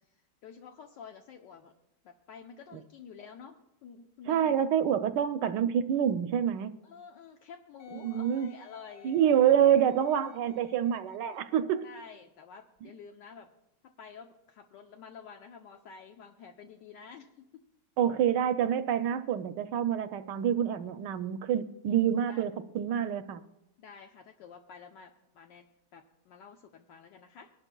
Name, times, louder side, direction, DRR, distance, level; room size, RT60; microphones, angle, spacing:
voice 1, 0.4-1.7 2.0-4.5 6.8-9.1 11.8-13.5 13.8-17.6 22.3-22.4 23.8-25.7 25.9-27.5, left 6 dB, 75° left, 3 dB, 1.4 m, -50 dB
voice 2, 4.3-6.8 7.9-8.5 9.0-11.9 18.0-23.4, right 9 dB, 75° right, 10 dB, 1.2 m, -27 dB
Wind instrument woodwind instrument, 7.8-12.1 12.8-12.9, left 8 dB, 55° left, 0.7 m, -57 dB
25.0 x 12.0 x 2.2 m, 0.91 s
omnidirectional pair, 2.0 m